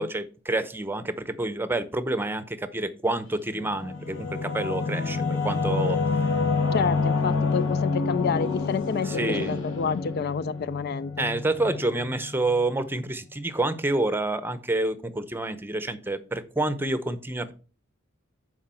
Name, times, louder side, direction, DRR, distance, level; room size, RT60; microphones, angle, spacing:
voice 1, 0.0-6.0 9.0-9.6 11.2-17.5, right 2 dB, 10° right, 0.7 m, -28 dB
Singing / Musical instrument, 3.5-12.6, left 4 dB, 65° left, 2.6 m, -28 dB
voice 2, 6.7-11.3, left 6 dB, 50° left, 0.3 m, -29 dB
11.5 x 4.8 x 4.4 m
head